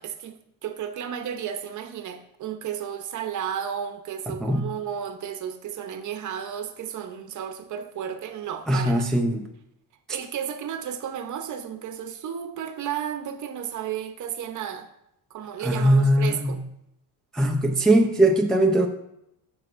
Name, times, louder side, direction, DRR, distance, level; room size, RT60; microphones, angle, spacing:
voice 1, 0.0-9.0 10.1-14.9 15.3-16.6, right 9 dB, 50° right, 7 dB, 0.8 m, -33 dB
voice 2, 4.4-4.7 8.7-9.5 15.6-16.5 17.3-18.9, right 1 dB, ahead, 1 dB, 0.5 m, -20 dB
12.0 x 6.3 x 2.5 m, 0.81 s
cardioid pair, 145°, 39 cm